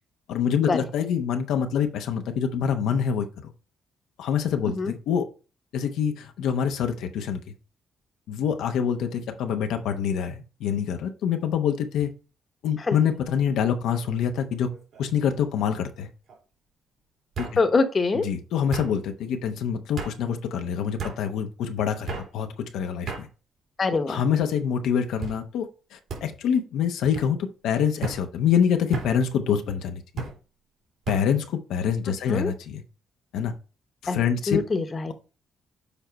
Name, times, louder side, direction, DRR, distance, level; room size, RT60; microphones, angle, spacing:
voice 1, 0.3-3.5 4.2-5.3 5.7-7.4 8.3-12.1 12.6-14.7 15.0-16.1 17.4-17.6 18.2-23.3 23.9-30.3 31.1-32.8 33.3-33.5 34.0-34.6, left 8 dB, 85° left, 6 dB, 0.9 m, -26 dB
sound 1, 13.9-14.3 14.7-15.2 16.3-16.4 17.3-17.6 18.7-18.9 20.0-20.1 21.0-21.2 22.1-22.3 23.1-23.2 24.0-24.4 25.2-25.4 26.1-26.2 27.1-27.3 28.0-28.2 28.9-29.1 30.2-30.4 31.0-31.2, right 4 dB, 65° right, 3.0 m, -33 dB
voice 2, 17.6-18.3 23.8-24.2 32.3-32.5 34.1-34.2 34.5-35.1, left 3 dB, 35° left, 8 dB, 1.0 m, -24 dB
7.1 x 4.5 x 4.0 m, 0.34 s
cardioid pair, 90°, 0 cm